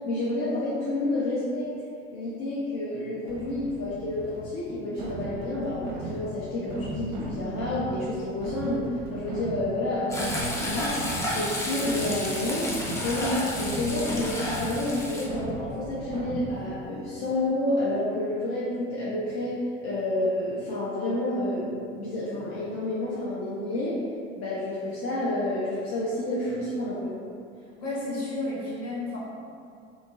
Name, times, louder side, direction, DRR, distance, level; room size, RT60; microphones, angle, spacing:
voice 1, 0.1-1.7 2.1-8.8 9.1-14.3 14.6-19.5 19.8-23.9 24.4-27.1, left 1 dB, 40° left, -9 dB, 0.6 m, -29 dB
sound 1, 3.3-16.8, right 2 dB, 45° right, 0.6 m, -37 dB
Frying (food), 10.1-15.3, left 1 dB, 10° left, 0.3 m, -32 dB
voice 2, 27.6-29.2, left 2 dB, 55° left, -9 dB, 1.4 m, -32 dB
2.7 x 2.6 x 2.6 m, 2.4 s
figure-of-eight pair, 70°, 38 cm